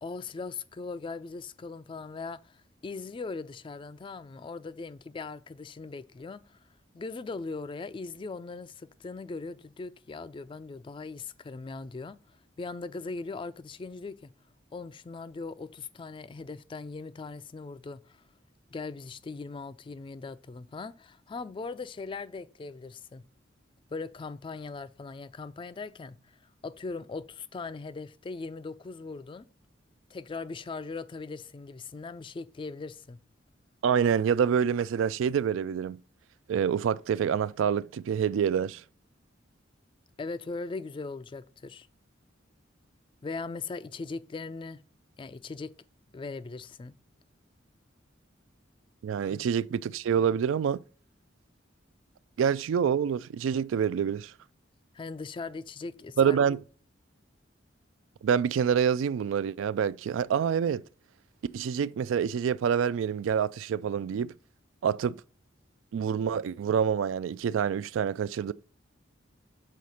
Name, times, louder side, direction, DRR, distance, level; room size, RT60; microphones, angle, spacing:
voice 1, 0.0-6.6 6.9-14.3 14.7-18.2 18.7-23.2 23.9-26.4 26.6-29.4 30.1-33.2 40.2-41.9 43.2-44.8 45.2-45.7 46.1-47.0 49.3-49.5 54.9-56.4, left 4 dB, 25° left, 0.3 m, -39 dB
voice 2, 33.8-36.0 36.5-38.8 49.0-50.8 52.4-54.3 56.2-56.6 58.2-60.8 61.5-64.3 64.8-65.2 65.9-68.5, right 7 dB, 90° right, 0.3 m, -27 dB
6.4 x 4.2 x 5.6 m
head